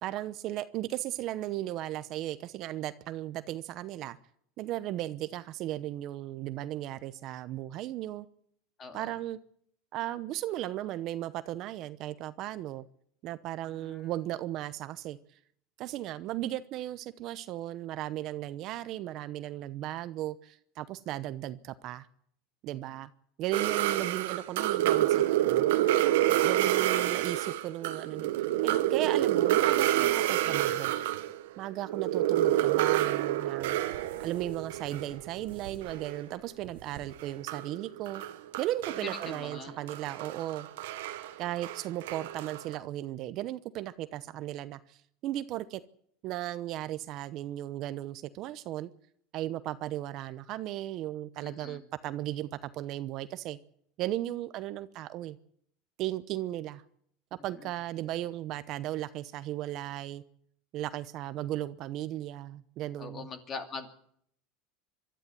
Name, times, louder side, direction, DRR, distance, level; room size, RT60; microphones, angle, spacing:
voice 1, 0.0-4.2 4.6-8.3 8.9-9.4 9.9-12.9 13.2-15.2 15.8-22.1 22.6-23.1 23.4-25.7 26.4-28.3 28.6-30.9 31.6-33.8 34.2-38.2 38.6-40.7 41.4-45.8 46.2-48.9 49.3-53.6 54.0-55.4 56.0-56.8 57.3-60.2 60.7-63.3, right 14 dB, 45° right, 13 dB, 0.9 m, -36 dB
voice 2, 8.8-9.1 13.8-14.0 26.2-26.6 39.0-39.7 51.4-51.8 57.6-57.7 63.0-63.9, left 4 dB, 25° left, 7 dB, 2.6 m, -42 dB
sound 1, 23.5-31.4 31.7-36.4 36.6-42.7, right 13 dB, 90° right, 1.5 m, -28 dB
24.5 x 12.5 x 9.3 m, 0.68 s
supercardioid pair, 150°, 0 cm